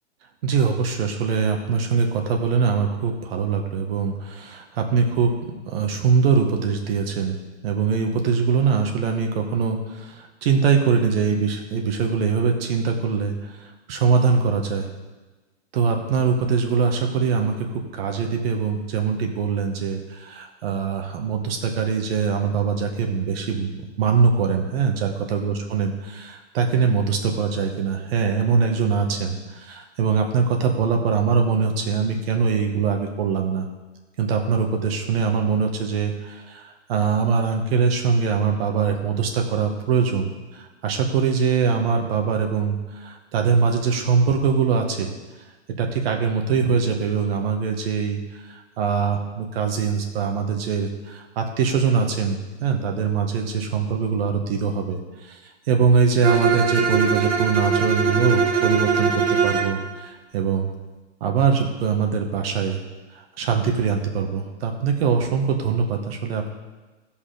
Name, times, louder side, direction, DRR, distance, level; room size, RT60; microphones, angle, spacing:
voice 1, 0.4-5.3 5.7-7.4 7.6-14.9 15.7-33.7 34.2-45.1 45.8-60.7 61.2-62.8 63.1-66.5, right 5 dB, 55° right, 3 dB, 2.0 m, -22 dB
Bowed string instrument, 56.2-59.8, right 6 dB, 80° right, 1.9 m, -21 dB
16.0 x 5.5 x 5.2 m, 1.2 s
hypercardioid pair, 125°, 36 cm